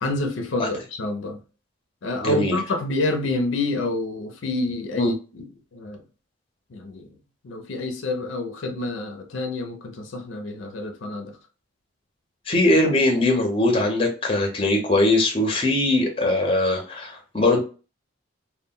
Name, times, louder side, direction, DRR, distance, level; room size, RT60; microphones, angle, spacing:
voice 1, 0.0-1.4 2.0-5.5 5.7-6.0 6.7-7.1 7.4-11.4, left 2 dB, 75° left, 0.5 m, -28 dB
voice 2, 2.2-2.6 5.0-5.1 12.5-17.6, left 2 dB, 25° left, 0.6 m, -21 dB
2.2 x 2.1 x 3.6 m
head